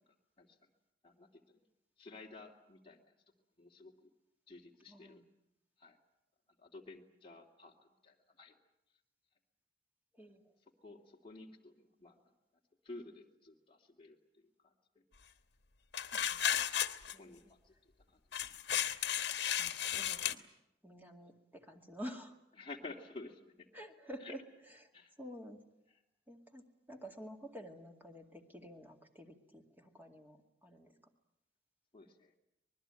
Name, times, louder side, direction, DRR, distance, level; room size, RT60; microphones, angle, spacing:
voice 1, 0.4-0.7 1.0-1.6 2.0-3.1 3.6-4.1 4.5-5.2 5.8-6.0 6.6-8.5 10.8-12.2 12.8-15.0 17.2-18.2 22.6-23.7 24.2-24.3 24.9-25.1 25.9-26.0 31.9-32.4, left 3 dB, 30° left, -1 dB, 2.7 m, -53 dB
voice 2, 4.9-5.2 10.1-10.4 16.1-16.4 17.1-17.5 19.6-20.5 20.8-22.4 23.7-24.4 24.8-24.9 25.2-25.6 26.3-30.9, equal, 10° right, 3 dB, 2.2 m, -50 dB
sound 1, 15.9-17.1 18.3-20.3, left 10 dB, 75° left, 1.3 m, -34 dB
25.5 x 20.5 x 9.0 m, 0.84 s
head